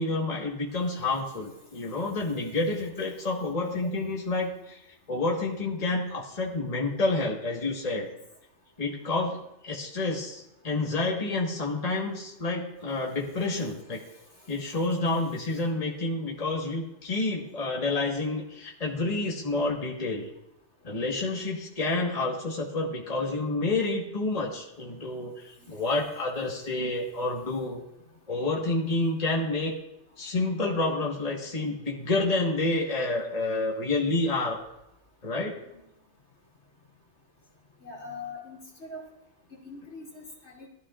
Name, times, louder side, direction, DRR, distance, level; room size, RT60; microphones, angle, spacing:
voice 1, 0.0-4.8 5.1-8.1 8.8-14.0 14.5-20.3 20.8-27.8 28.3-29.7 30.2-34.6 35.2-35.5, left 2 dB, 30° left, -2 dB, 1.6 m, -29 dB
voice 2, 25.6-26.0 35.6-35.7 37.8-39.0 39.6-40.7, left 3 dB, 65° left, -2 dB, 2.8 m, -43 dB
18.0 x 12.5 x 2.5 m, 0.84 s
omnidirectional pair, 1.2 m